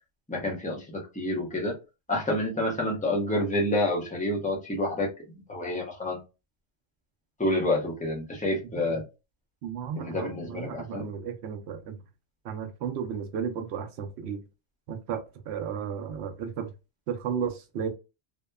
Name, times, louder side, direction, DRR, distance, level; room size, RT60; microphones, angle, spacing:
voice 1, 0.3-1.7 2.1-5.1 5.5-6.2 7.4-9.0 10.0-11.1, left 1 dB, 10° left, 0.7 m, -28 dB
voice 2, 9.6-12.0 12.4-14.4 14.9-16.7 17.1-17.9, right 7 dB, 75° right, 0.8 m, -34 dB
2.8 x 2.1 x 2.2 m
omnidirectional pair, 1.2 m